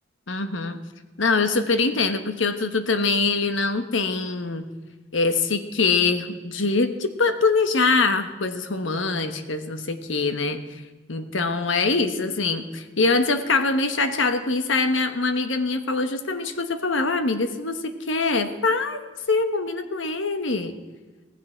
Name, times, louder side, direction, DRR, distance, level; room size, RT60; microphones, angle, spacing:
voice 1, 0.3-0.8 1.2-4.7 5.1-10.8 11.1-19.0 19.3-20.7, left 3 dB, 75° left, 9 dB, 1.2 m, -23 dB
18.0 x 16.0 x 4.5 m, 1.3 s
head